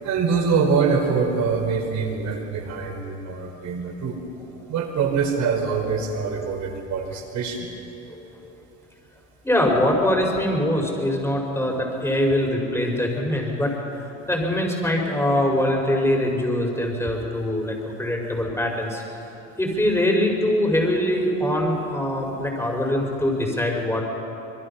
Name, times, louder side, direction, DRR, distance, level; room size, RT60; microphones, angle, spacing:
voice 1, 0.0-4.2 4.7-7.7, right 5 dB, 55° right, 3 dB, 4.7 m, -24 dB
voice 2, 9.4-13.7 14.0-19.0 19.6-24.0, left 1 dB, 10° left, 1 dB, 5.3 m, -23 dB
26.0 x 22.0 x 5.8 m, 3.0 s
supercardioid pair, 100°, 33 cm